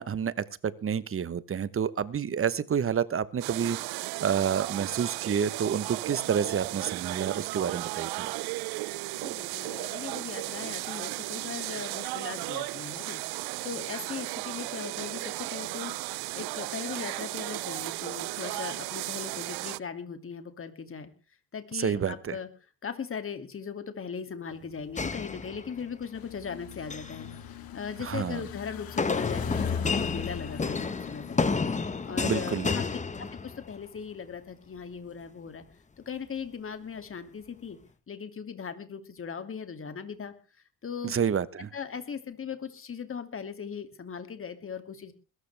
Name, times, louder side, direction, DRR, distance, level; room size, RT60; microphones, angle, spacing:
voice 1, 0.0-8.3 21.7-22.4 28.0-28.4 32.2-32.7 41.0-41.7, right 7 dB, 35° right, 1.1 m, -29 dB
sound 1, 3.4-19.8, right 21 dB, 75° right, 0.6 m, -35 dB
voice 2, 9.2-13.2 13.6-21.1 21.5-22.5 22.8-27.3 27.7-31.6 32.0-32.8 33.2-35.6 36.1-37.8 38.1-40.3 40.8-41.1 41.7-45.1, left 6 dB, 35° left, 2.6 m, -39 dB
sound 2, 25.0-26.0 26.7-27.2 29.0-33.8, left 4 dB, 20° left, 1.4 m, -31 dB
sound 3, 26.1-32.4, left 8 dB, 65° left, 2.0 m, -39 dB
21.0 x 13.0 x 3.5 m
cardioid pair, 100°, 38 cm